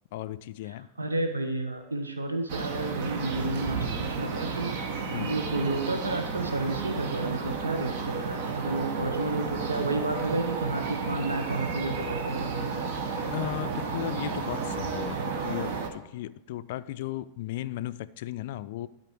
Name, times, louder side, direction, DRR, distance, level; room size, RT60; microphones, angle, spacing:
voice 1, 0.1-0.9 5.1-5.4 13.2-18.9, left 14 dB, 50° left, 15 dB, 0.3 m, -36 dB
voice 2, 1.0-12.8, right 2 dB, 80° right, 6 dB, 0.8 m, -31 dB
sound 1, 2.5-15.9, right 5 dB, 50° right, 1.0 m, -32 dB
12.0 x 4.3 x 4.7 m, 0.96 s
figure-of-eight pair, 90°, 0 cm